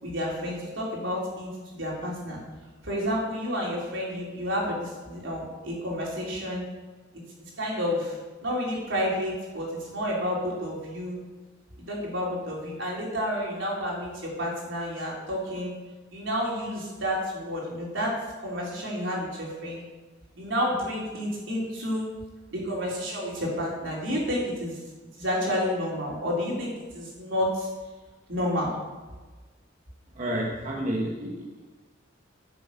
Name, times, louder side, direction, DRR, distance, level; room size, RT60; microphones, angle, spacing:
voice 1, 0.0-2.4 2.8-6.6 7.6-8.1 8.4-11.2 11.8-15.7 16.1-19.8 20.4-22.0 22.5-24.8 25.2-27.7 28.3-28.8, equal, 70° right, -4 dB, 4.1 m, -30 dB
voice 2, 30.1-31.7, right 1 dB, 40° right, -1 dB, 1.3 m, -30 dB
10.5 x 7.4 x 6.9 m, 1.3 s
head